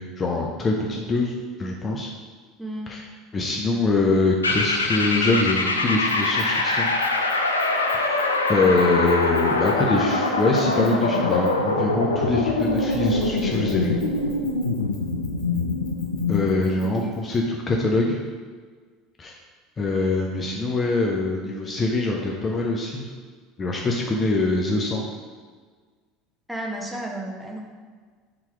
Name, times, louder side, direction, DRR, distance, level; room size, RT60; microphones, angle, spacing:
voice 1, 0.0-1.3 1.6-2.1 2.9-3.0 3.3-6.9 7.9-8.0 8.5-14.0 16.3-18.2 19.2-19.4 19.8-23.1 23.6-25.0, left 3 dB, 30° left, -1 dB, 0.6 m, -23 dB
voice 2, 2.6-2.9 3.8-4.4 16.8-17.2 26.5-27.6, right 1 dB, 5° right, -1 dB, 0.9 m, -34 dB
sound 1, 4.4-16.5, left 2 dB, 90° left, 0.3 m, -23 dB
Keys jangling, 6.1-11.8 12.6-17.4, left 4 dB, 70° left, 1.3 m, -51 dB
3.8 x 2.9 x 4.5 m, 1.5 s
hypercardioid pair, 70°, 0 cm